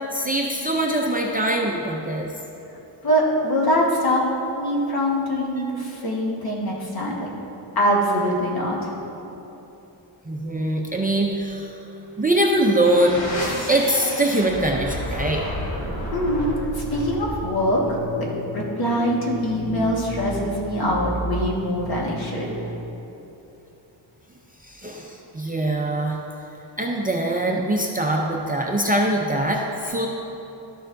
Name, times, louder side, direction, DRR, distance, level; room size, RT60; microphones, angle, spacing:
voice 1, 0.1-2.3 10.2-11.8 12.2-13.2 13.7-15.4 24.6-26.2 26.8-30.1, right 1 dB, 20° right, -2 dB, 0.5 m, -22 dB
voice 2, 3.0-4.2 4.6-7.3 7.7-8.9 16.1-18.0 18.5-22.5, equal, 55° left, -4 dB, 1.5 m, -23 dB
sound 1, 12.2-22.9, equal, 90° left, 1.6 m, -32 dB
12.5 x 6.8 x 2.6 m, 3.0 s
wide cardioid pair, 165°, 44 cm